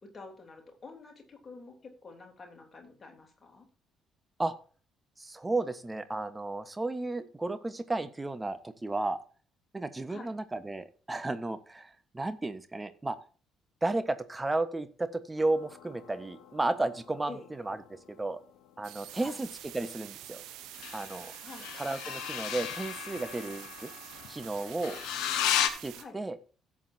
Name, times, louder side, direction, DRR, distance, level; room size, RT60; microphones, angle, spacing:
voice 1, 0.0-3.7 10.1-10.3 17.3-17.5 19.1-19.4 21.4-21.7 25.9-26.2, left 3 dB, 30° left, 2 dB, 3.3 m, -48 dB
voice 2, 5.2-9.2 9.7-13.2 13.8-18.4 18.8-19.5 19.7-20.4 20.9-21.3 21.8-23.9 24.3-25.0 25.8-26.4, right 2 dB, 15° right, 11 dB, 1.2 m, -33 dB
sound 1, 15.4-18.4 20.7-25.7, left 10 dB, 60° left, 0.9 m, -36 dB
sound 2, 18.8-26.0, right 12 dB, 60° right, 1.0 m, -47 dB
16.5 x 7.3 x 2.8 m, 0.37 s
figure-of-eight pair, 45°, 0 cm